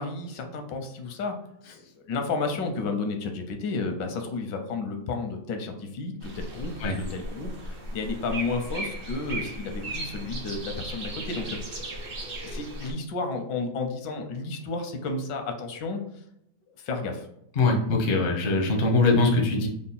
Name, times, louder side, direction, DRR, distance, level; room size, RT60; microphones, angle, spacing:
voice 1, 0.0-1.4 2.1-11.8 12.4-16.0 16.8-17.3, left 3 dB, 85° left, 5 dB, 1.3 m, -32 dB
sound 1, 6.2-12.9, right 1 dB, 60° right, 0.5 m, -36 dB
voice 2, 17.6-19.7, left 3 dB, 60° left, 2 dB, 0.5 m, -22 dB
3.8 x 2.0 x 3.9 m, 0.78 s
omnidirectional pair, 1.9 m